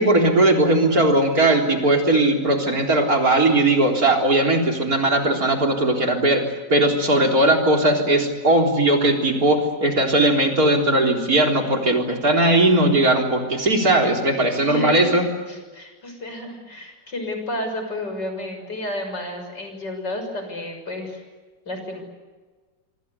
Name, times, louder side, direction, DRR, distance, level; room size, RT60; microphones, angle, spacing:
voice 1, 0.0-6.4 6.7-15.3, right 1 dB, 50° right, 2 dB, 4.3 m, -18 dB
voice 2, 14.6-15.1 15.5-21.2 21.7-22.0, left 1 dB, 70° left, 5 dB, 7.2 m, -31 dB
26.5 x 26.0 x 8.3 m, 1.3 s
omnidirectional pair, 1.9 m